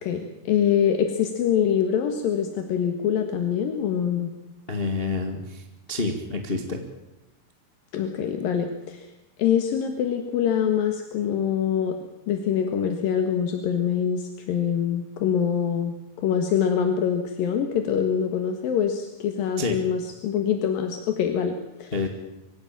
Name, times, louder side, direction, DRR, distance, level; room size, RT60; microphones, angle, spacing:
voice 1, 0.0-4.3 7.9-9.1 9.4-11.9 12.3-21.5 21.8-21.9, left 8 dB, 75° left, 5 dB, 3.3 m, -24 dB
voice 2, 4.7-6.8 19.6-19.8 21.9-22.1, left 3 dB, 20° left, 4 dB, 1.7 m, -28 dB
24.5 x 16.5 x 8.9 m, 0.96 s
omnidirectional pair, 4.2 m